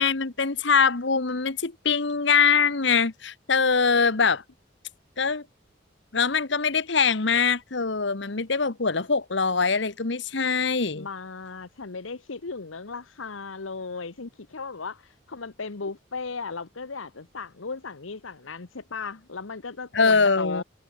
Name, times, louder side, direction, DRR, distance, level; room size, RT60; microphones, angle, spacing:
voice 1, 0.0-4.4 5.2-5.4 6.1-11.1 19.9-20.6, left 5 dB, 65° left, 1.2 m, -23 dB
voice 2, 10.9-20.6, left 4 dB, 80° left, 1.1 m, -36 dB
head